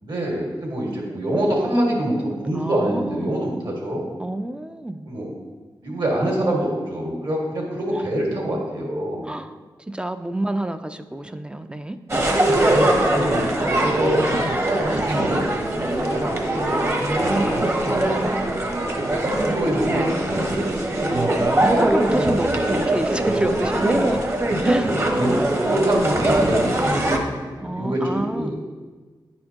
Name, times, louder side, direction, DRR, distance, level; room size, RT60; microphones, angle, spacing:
voice 1, 0.0-4.1 5.0-5.3 5.8-9.3 12.6-14.3 14.6-17.0 17.8-18.0 19.2-20.7 25.1-28.5, right 1 dB, 60° right, -2 dB, 1.8 m, -25 dB
voice 2, 2.5-3.3 4.2-5.1 7.9-8.1 9.2-9.6 9.9-12.0 17.2-18.2 21.0-24.2 24.6-25.2 27.6-28.6, right 1 dB, 10° right, 9 dB, 0.3 m, -29 dB
sound 1, 12.1-27.2, right 1 dB, 30° right, 0.9 m, -21 dB
9.9 x 4.3 x 2.9 m, 1.4 s
cardioid pair, 75°, 9 cm